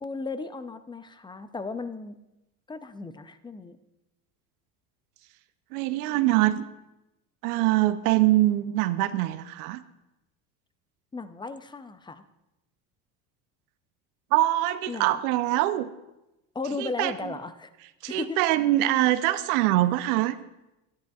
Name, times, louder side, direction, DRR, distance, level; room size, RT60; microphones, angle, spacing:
voice 1, 0.0-2.1 2.7-3.8 11.1-12.2 14.9-15.2 16.5-17.7 18.1-18.4, left 3 dB, 10° left, 12 dB, 0.4 m, -35 dB
voice 2, 5.7-6.7 7.4-9.8 14.3-15.9 16.8-17.1 18.0-20.4, right 15 dB, 80° right, 12 dB, 0.7 m, -23 dB
13.5 x 10.5 x 2.4 m, 0.95 s
supercardioid pair, 90°, 45 cm